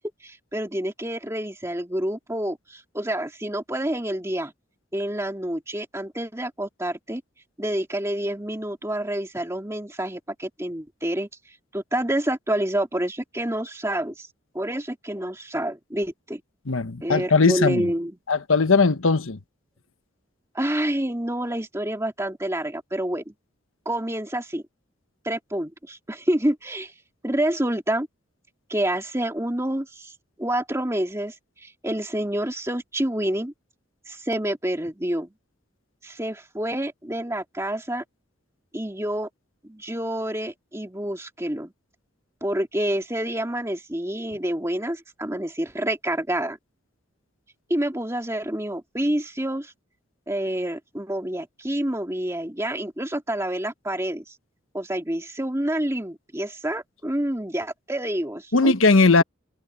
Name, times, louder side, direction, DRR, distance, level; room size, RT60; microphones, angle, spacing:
voice 1, 0.0-4.5 4.9-7.2 7.6-11.3 11.7-14.3 14.5-16.4 17.0-18.2 20.5-23.3 23.9-24.6 25.2-26.9 27.2-28.1 28.7-33.5 34.1-35.3 36.0-38.0 38.7-39.3 39.6-41.7 42.4-46.6 47.7-49.7 50.3-54.4 54.7-58.7, right 1 dB, 15° right, 2.3 m, -28 dB
voice 2, 16.7-17.9 18.3-19.4 58.5-59.2, left 3 dB, 85° left, 1.2 m, -19 dB
head